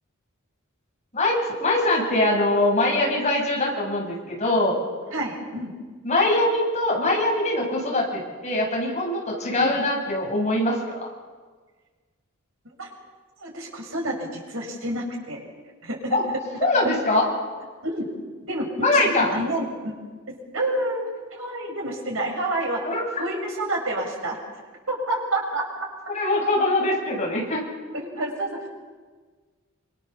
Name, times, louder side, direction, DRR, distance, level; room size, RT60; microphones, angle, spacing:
voice 1, 1.1-4.8 6.0-11.1 16.1-16.3 16.6-17.3 18.8-19.3 22.8-23.0 26.1-27.7, left 2 dB, 35° left, -2 dB, 7.5 m, -23 dB
voice 2, 5.1-5.7 9.6-9.8 12.8-12.9 13.4-15.4 15.8-16.2 17.8-18.1 18.5-19.9 20.3-22.8 23.2-24.4 24.9-25.9 27.9-28.7, right 1 dB, 70° right, 0 dB, 7.0 m, -29 dB
28.0 x 26.0 x 7.2 m, 1.4 s
head